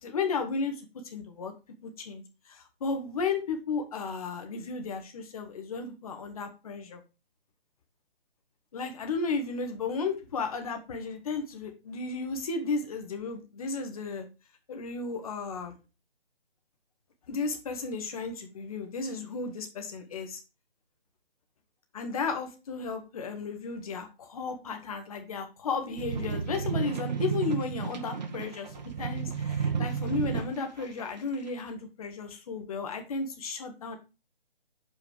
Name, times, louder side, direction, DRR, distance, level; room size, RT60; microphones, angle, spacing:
voice 1, 0.0-1.5 1.8-7.0 8.7-14.2 14.7-15.7 17.3-20.4 21.9-34.0, left 4 dB, 35° left, 6 dB, 1.7 m, -34 dB
sound 1, 26.0-30.8 31.5-31.6, right 6 dB, 45° right, 1.4 m, -32 dB
6.8 x 5.6 x 4.9 m, 0.30 s
figure-of-eight pair, 155°, 31 cm